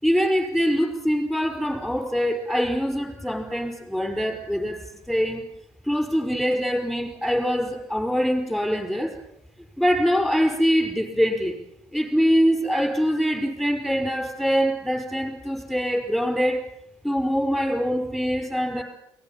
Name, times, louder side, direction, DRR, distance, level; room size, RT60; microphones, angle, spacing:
voice 1, 0.0-4.8 5.1-5.4 5.8-9.1 9.8-11.6 11.9-16.6 17.0-18.8, equal, ahead, 5 dB, 5.2 m, -23 dB
23.0 x 18.0 x 7.4 m, 0.76 s
cardioid pair, 125°, 8 cm